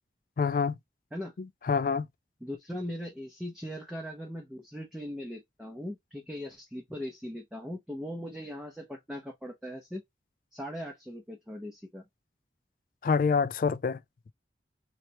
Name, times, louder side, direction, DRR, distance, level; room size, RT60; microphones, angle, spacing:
voice 1, 0.4-0.8 1.4-2.1 13.0-14.0, left 5 dB, 50° left, 0.3 m, -27 dB
voice 2, 2.4-10.0 10.5-12.0, equal, 5° right, 0.6 m, -39 dB
3.2 x 2.9 x 2.8 m
head